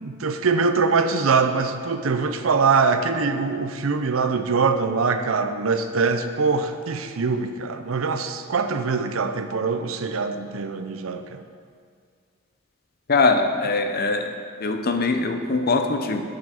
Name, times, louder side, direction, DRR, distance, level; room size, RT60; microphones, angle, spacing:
voice 1, 0.0-11.4, right 4 dB, 85° right, 8 dB, 0.6 m, -23 dB
voice 2, 13.1-14.3 14.6-16.2, left 3 dB, 50° left, 6 dB, 0.7 m, -22 dB
7.9 x 5.8 x 7.0 m, 2.1 s
head